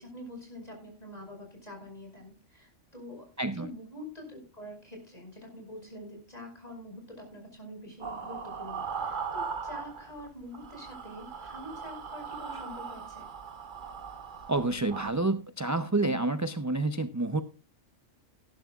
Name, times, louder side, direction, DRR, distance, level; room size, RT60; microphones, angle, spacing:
voice 1, 0.0-13.3, left 1 dB, 30° left, 2 dB, 5.6 m, -46 dB
voice 2, 3.4-3.7 14.5-17.4, right 2 dB, 25° right, 10 dB, 0.4 m, -28 dB
sound 1, 8.0-10.3 10.5-15.1, right 6 dB, 45° right, 1.1 m, -39 dB
19.0 x 11.0 x 2.4 m, 0.31 s
omnidirectional pair, 1.3 m